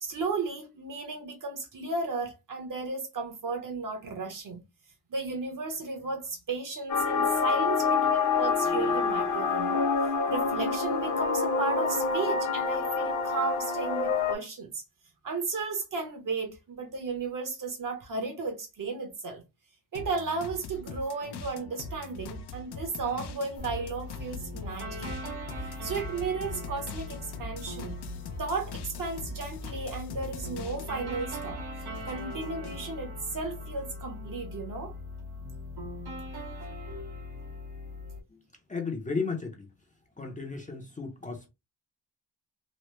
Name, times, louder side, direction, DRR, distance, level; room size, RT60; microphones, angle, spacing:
voice 1, 0.0-4.6 5.1-9.9 10.3-14.8 15.2-19.4 19.9-25.2 25.8-28.0 28.4-31.6 32.0-34.9, right 4 dB, 55° right, 1.0 m, -34 dB
sound 1, 6.9-14.3, left 5 dB, 45° left, 0.9 m, -27 dB
sound 2, 19.9-31.1 31.5-32.9, left 3 dB, 75° left, 0.6 m, -42 dB
sound 3, 23.6-38.2, left 1 dB, 70° right, 1.2 m, -40 dB
voice 2, 38.7-39.7 40.2-41.5, left 4 dB, 20° left, 0.6 m, -34 dB
3.0 x 2.1 x 3.1 m
wide cardioid pair, 155°, 40 cm